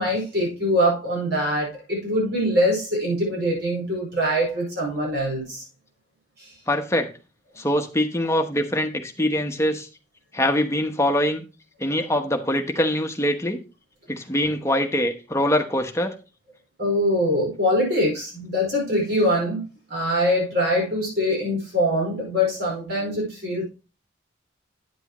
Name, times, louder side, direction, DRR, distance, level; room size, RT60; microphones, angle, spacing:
voice 1, 0.0-5.6 6.4-6.5 16.8-19.6 19.9-23.6, equal, 60° right, -2 dB, 5.0 m, -23 dB
voice 2, 6.7-7.1 7.6-9.9 10.3-11.4 11.8-13.6 14.1-16.1, left 1 dB, 15° left, 5 dB, 1.0 m, -23 dB
9.3 x 8.2 x 3.0 m, 0.31 s
head